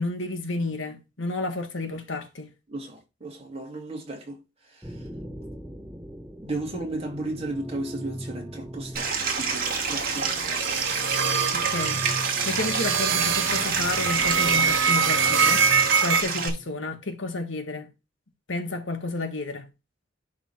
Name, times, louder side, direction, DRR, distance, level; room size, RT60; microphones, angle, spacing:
voice 1, 0.0-2.5 11.5-17.9 18.5-19.7, left 2 dB, 80° left, 1.6 m, -31 dB
voice 2, 2.7-4.4 4.7-5.0 6.4-10.7 12.6-12.7, right 2 dB, 30° right, 2.7 m, -35 dB
sound 1, 4.8-16.8, equal, 5° right, 1.1 m, -39 dB
Stream, 8.9-16.5, right 5 dB, 50° right, 2.0 m, -28 dB
sound 2, 9.7-16.2, right 6 dB, 85° right, 1.7 m, -25 dB
11.0 x 3.7 x 4.4 m
head